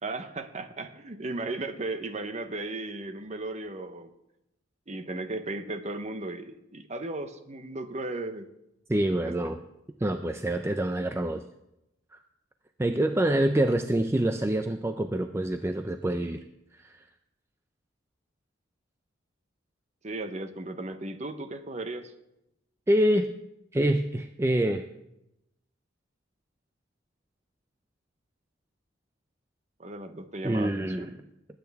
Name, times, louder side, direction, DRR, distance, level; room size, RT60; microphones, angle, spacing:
voice 1, 0.0-4.1 4.9-8.5 9.3-9.5 20.0-22.1 29.8-31.1, right 2 dB, 35° right, 9 dB, 0.8 m, -36 dB
voice 2, 8.9-9.6 10.0-11.4 12.1-12.2 12.8-16.4 16.8-17.0 22.9-23.3 23.7-24.9 30.4-31.1, right 1 dB, 15° right, 7 dB, 0.4 m, -26 dB
20.0 x 8.9 x 3.5 m, 0.87 s
head